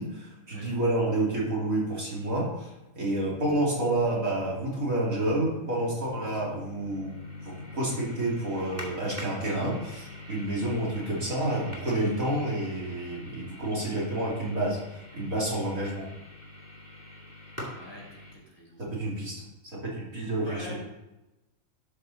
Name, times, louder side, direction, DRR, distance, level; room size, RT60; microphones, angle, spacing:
voice 1, 0.0-14.8 15.1-16.0 18.8-19.3 19.7-20.8, right 1 dB, 70° right, -5 dB, 3.1 m, -29 dB
sound 1, 3.2-18.3, left 2 dB, 10° right, 1.9 m, -44 dB
voice 2, 17.8-18.8 20.4-20.8, left 1 dB, 15° left, -4 dB, 3.4 m, -44 dB
12.0 x 5.8 x 4.0 m, 0.97 s
omnidirectional pair, 1.5 m